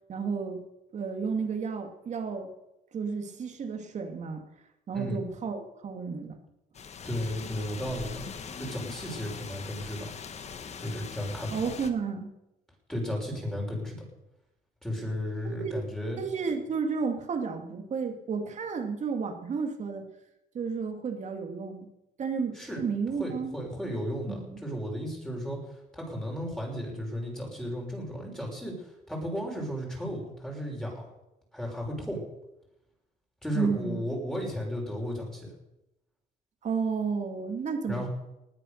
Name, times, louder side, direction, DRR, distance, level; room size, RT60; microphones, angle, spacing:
voice 1, 0.1-0.6 0.9-2.5 2.9-4.4 4.9-6.4 11.5-12.3 15.6-15.7 16.2-20.0 20.5-21.9 22.2-23.6 24.3-24.6 33.5-34.0 36.6-38.1, right 5 dB, 45° right, 5 dB, 2.6 m, -32 dB
voice 2, 4.9-5.2 7.0-8.3 8.6-10.1 10.8-11.7 12.9-14.0 14.8-16.2 22.6-22.8 23.2-25.6 25.9-28.7 29.1-31.1 31.5-32.2 33.4-35.5 37.9-38.1, equal, 5° left, -1 dB, 6.0 m, -34 dB
sound 1, 6.7-11.9, left 6 dB, 40° left, 1.4 m, -41 dB
20.0 x 8.5 x 6.8 m, 0.91 s
cardioid pair, 110°, 17 cm